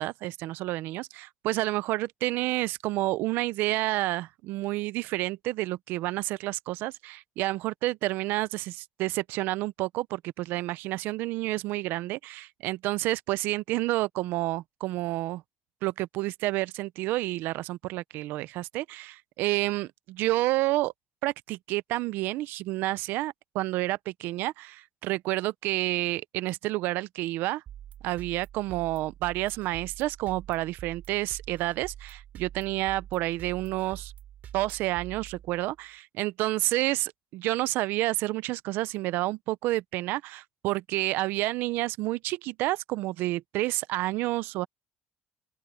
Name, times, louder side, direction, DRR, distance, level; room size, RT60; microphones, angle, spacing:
voice 1, 0.0-15.4 15.8-20.9 21.2-27.6 28.0-34.1 34.5-44.7, right 18 dB, 85° right, 0.5 m, -29 dB
sound 1, 27.7-35.8, right 11 dB, 60° right, 3.8 m, -46 dB
open air
cardioid pair, 135°, 3 cm